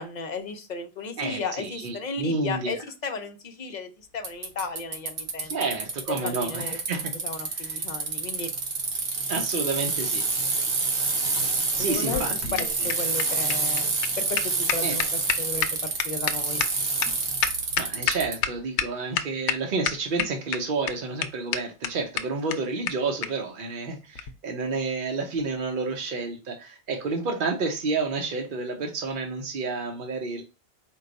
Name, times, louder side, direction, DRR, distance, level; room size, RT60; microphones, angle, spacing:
voice 1, 0.0-2.8 3.0-5.5 6.1-6.8 7.2-8.5 11.8-15.0 15.4-16.6, left 4 dB, 50° left, 7 dB, 0.6 m, -35 dB
voice 2, 1.2-2.8 5.5-7.1 7.6-7.8 9.3-10.2 11.8-12.7 14.8-15.0 17.8-30.4, right 3 dB, 55° right, 2 dB, 0.8 m, -30 dB
Bicycle, 4.2-18.4, right 4 dB, 80° right, 1.3 m, -28 dB
sound 1, 11.8-18.5 18.8-18.9 19.2-19.6 19.9-20.6 20.9-21.0 21.2-21.3 21.5-21.6 21.8-21.9 22.2-22.3 22.5-22.6 22.9-23.0 23.2-23.3 24.2-24.3, left 9 dB, 85° left, 0.9 m, -27 dB
4.6 x 2.2 x 3.8 m, 0.29 s
omnidirectional pair, 1.2 m